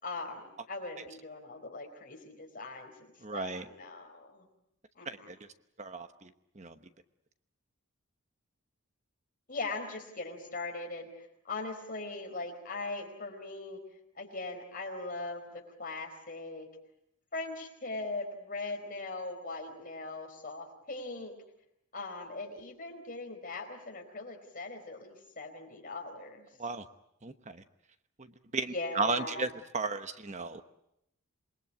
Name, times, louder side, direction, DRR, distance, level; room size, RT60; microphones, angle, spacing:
voice 1, 0.0-2.9 3.3-4.5 4.9-5.3 9.5-13.8 14.1-16.7 17.3-21.3 21.9-26.5 28.7-29.5, left 3 dB, 40° left, 3 dB, 4.5 m, -40 dB
voice 2, 3.2-3.6 5.0-5.4 5.8-6.3 6.6-6.7 26.6-26.8 27.2-27.6 28.2-28.3 28.5-29.5 29.7-30.6, right 4 dB, 30° right, 9 dB, 1.0 m, -34 dB
27.5 x 21.0 x 8.4 m, 0.81 s
head